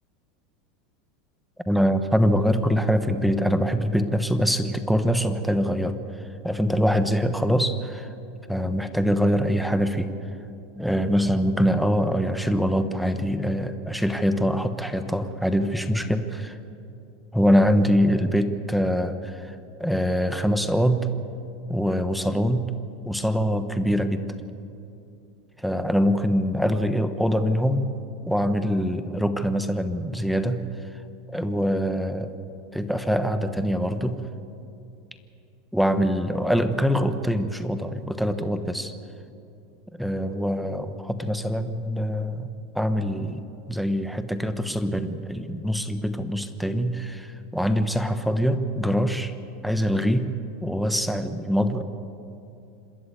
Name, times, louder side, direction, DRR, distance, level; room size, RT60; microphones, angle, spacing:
voice 1, 1.7-8.1 8.5-10.1 10.8-16.6 17.3-21.1 21.7-22.7 23.0-24.3 25.6-27.9 28.2-30.7 31.3-32.3 32.7-34.2 35.7-38.9 39.9-49.3 49.6-50.3 50.6-51.8, equal, ahead, 9 dB, 1.1 m, -24 dB
26.5 x 13.0 x 8.6 m, 2.7 s
supercardioid pair, 120°, 0 cm